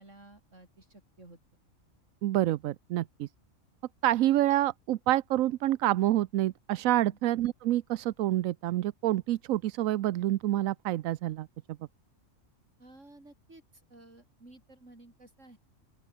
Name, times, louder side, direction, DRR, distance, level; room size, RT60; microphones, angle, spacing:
voice 1, 0.0-1.4 7.0-7.2 12.8-15.6, right 2 dB, 65° right, 6.6 m, -54 dB
voice 2, 2.2-3.3 4.0-11.5, right 14 dB, 80° right, 1.0 m, -27 dB
open air
omnidirectional pair, 1.4 m